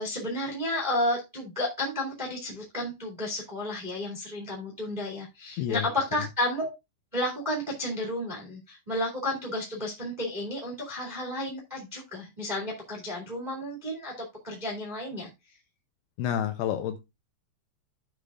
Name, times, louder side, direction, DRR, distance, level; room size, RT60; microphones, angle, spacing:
voice 1, 0.0-6.7 7.1-15.3, left 1 dB, 25° right, 0.9 m, -32 dB
voice 2, 5.6-5.9 16.2-17.0, left 10 dB, 85° left, 2.4 m, -29 dB
15.0 x 5.0 x 2.4 m
omnidirectional pair, 5.1 m